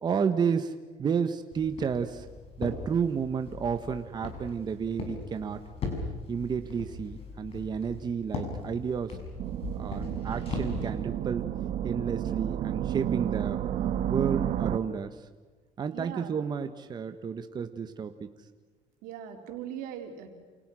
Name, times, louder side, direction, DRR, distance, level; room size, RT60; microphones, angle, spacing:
voice 1, 0.0-0.7 1.0-2.3 2.6-5.6 6.3-9.2 9.8-11.5 11.8-13.6 14.1-15.3 15.8-18.3, right 6 dB, 30° right, 9 dB, 1.2 m, -31 dB
Walk footsteps, 1.5-10.9, left 3 dB, 40° left, 6.8 m, -39 dB
sound 1, 9.4-14.8, right 10 dB, 60° right, 1.4 m, -31 dB
voice 2, 15.9-16.3 19.0-20.4, right 9 dB, 85° right, 4 dB, 4.3 m, -40 dB
29.0 x 28.5 x 6.3 m, 1.4 s
cardioid pair, 140°, 14 cm